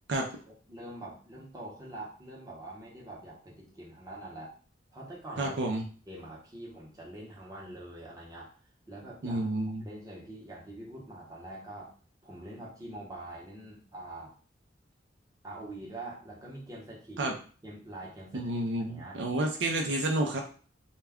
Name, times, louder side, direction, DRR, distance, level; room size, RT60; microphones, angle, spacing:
voice 1, 0.4-4.6 4.9-5.6 6.1-8.5 8.9-11.9 12.2-14.3 15.4-17.4 17.6-18.5 18.8-19.2, right 1 dB, 20° right, -4 dB, 0.8 m, -44 dB
voice 2, 5.4-5.8 9.2-9.8 17.2-17.3 18.3-20.4, right 2 dB, 70° right, 2 dB, 0.4 m, -30 dB
2.2 x 2.2 x 3.4 m, 0.40 s
head